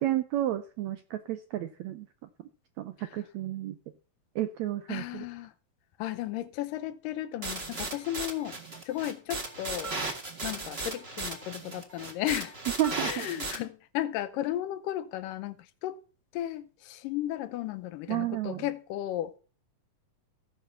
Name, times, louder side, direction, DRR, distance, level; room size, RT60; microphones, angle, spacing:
voice 1, 0.0-2.1 2.8-3.8 4.3-5.2 12.8-13.3 18.1-18.6, right 13 dB, 80° right, 1.6 m, -31 dB
voice 2, 4.9-5.5 6.0-8.6 8.9-10.0 10.4-12.6 13.0-16.0 16.3-19.3, left 13 dB, 80° left, 2.3 m, -34 dB
sound 1, 7.4-13.6, right 3 dB, 30° right, 1.2 m, -36 dB
15.5 x 5.5 x 6.8 m
omnidirectional pair, 3.9 m